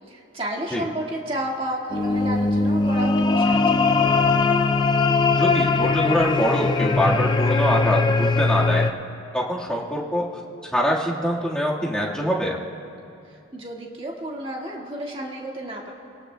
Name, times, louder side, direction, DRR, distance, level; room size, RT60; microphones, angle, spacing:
voice 1, 0.1-4.0 13.3-15.9, right 1 dB, 25° right, -2 dB, 1.8 m, -32 dB
sound 1, 1.9-8.9, left 3 dB, 20° left, 0.3 m, -20 dB
voice 2, 5.3-8.9 9.3-10.2 10.7-12.6, equal, 5° left, -5 dB, 1.6 m, -24 dB
27.0 x 18.5 x 2.2 m, 2.7 s
head